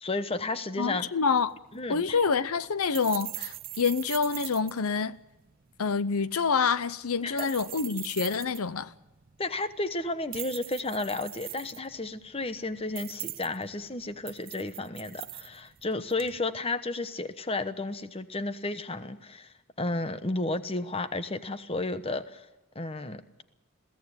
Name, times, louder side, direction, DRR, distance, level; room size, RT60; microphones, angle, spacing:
voice 1, 0.0-1.1 1.7-2.2 7.2-7.5 9.4-22.5 22.7-23.4, left 2 dB, 25° left, 1.1 m, -33 dB
voice 2, 0.8-1.6 1.9-5.2 5.8-8.9, left 5 dB, 85° left, 0.7 m, -27 dB
sound 1, 1.3-16.4, right 15 dB, 40° right, 0.7 m, -43 dB
21.5 x 16.5 x 9.7 m
head